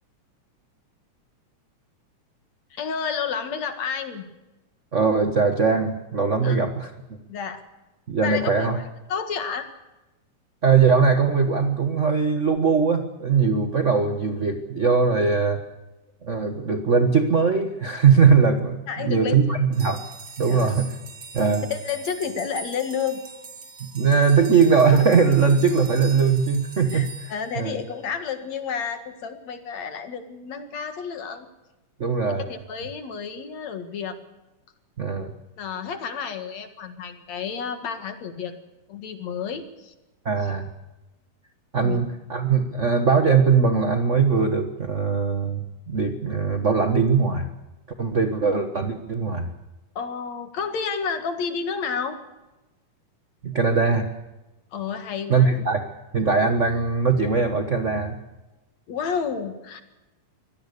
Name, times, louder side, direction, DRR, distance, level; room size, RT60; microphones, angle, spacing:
voice 1, 2.7-4.2 6.4-6.6 7.3-7.6 8.2-8.8 9.1-9.7 18.9-19.4 20.5-20.7 21.7-23.2 26.9-31.5 32.4-34.2 35.6-38.5 38.9-39.9 41.8-42.0 50.0-52.2 54.7-55.6 58.9-59.8, left 6 dB, 60° left, 8 dB, 2.9 m, -30 dB
voice 2, 4.9-6.9 8.1-8.8 10.6-15.6 16.2-20.0 20.4-20.9 21.3-21.7 23.8-27.8 32.0-32.4 35.0-35.3 40.2-40.7 41.7-47.5 48.0-49.5 53.4-54.1 55.3-58.2, right 5 dB, 60° right, 7 dB, 0.7 m, -20 dB
sound 1, 19.7-28.2, right 4 dB, 40° right, 2.7 m, -42 dB
24.5 x 18.0 x 6.8 m, 1.0 s
omnidirectional pair, 3.7 m